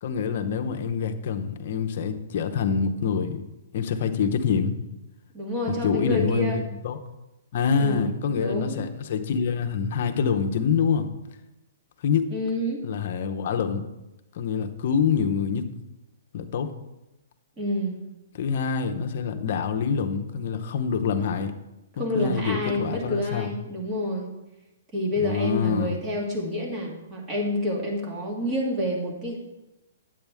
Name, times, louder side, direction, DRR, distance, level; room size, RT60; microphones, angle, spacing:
voice 1, 0.0-3.4 3.7-4.8 5.7-7.0 7.5-11.1 12.0-12.3 12.8-13.8 14.3-15.7 16.3-16.7 18.3-21.5 22.0-23.5 25.2-26.0, left 6 dB, 50° left, 6 dB, 0.8 m, -26 dB
voice 2, 5.3-6.6 7.8-8.8 12.3-12.8 17.6-18.0 22.0-24.3 24.9-29.4, left 1 dB, 20° right, -1 dB, 1.8 m, -28 dB
8.9 x 8.8 x 3.5 m, 0.97 s
hypercardioid pair, 160°, 0 cm